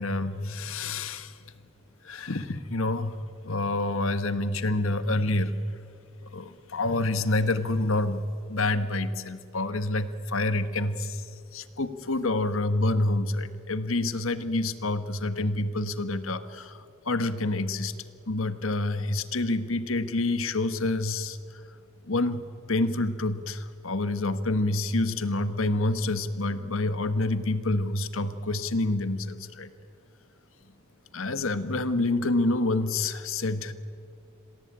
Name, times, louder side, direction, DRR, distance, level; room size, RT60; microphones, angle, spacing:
voice 1, 0.0-1.3 2.0-3.2 3.4-5.5 6.3-8.2 8.5-11.2 11.5-16.7 17.0-21.4 22.1-22.4 22.7-29.7 31.1-33.7, left 2 dB, 75° left, 11 dB, 1.5 m, -27 dB
29.5 x 22.5 x 8.9 m, 2.3 s
head